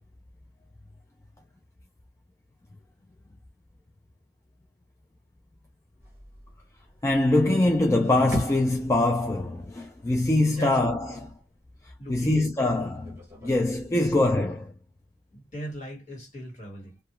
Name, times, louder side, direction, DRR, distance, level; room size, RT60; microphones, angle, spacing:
sound 1, 6.0-13.6, equal, 15° right, 1.0 m, -40 dB
voice 1, 7.0-11.4 12.1-14.7, left 2 dB, 15° left, 0.3 m, -23 dB
voice 2, 12.0-12.7 13.4-13.5 14.0-14.1 15.3-17.0, right 1 dB, 45° left, 1.5 m, -39 dB
2.3 x 2.1 x 3.0 m
head